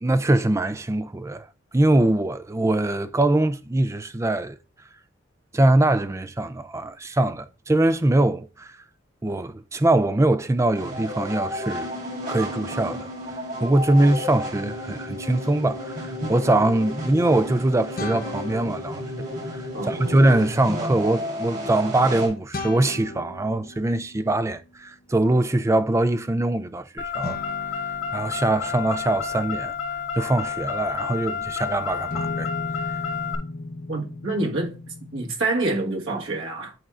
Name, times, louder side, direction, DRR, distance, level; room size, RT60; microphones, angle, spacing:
voice 1, 0.0-1.5 1.7-4.6 5.5-8.7 9.2-11.9 12.3-13.1 13.6-19.0 19.5-27.4 28.1-29.7 30.2-32.5, right 2 dB, 15° right, 0.4 m, -22 dB
sound 1, 10.7-22.3, equal, 50° right, 4.1 m, -32 dB
sound 2, 18.0-19.6 22.5-24.9 27.2-31.6 32.1-35.3, left 2 dB, 45° left, 0.7 m, -38 dB
voice 2, 19.7-20.2 33.9-36.7, right 2 dB, 80° right, 1.5 m, -27 dB
Car, 27.0-33.4, left 7 dB, 90° left, 1.4 m, -30 dB
10.5 x 4.4 x 2.4 m
head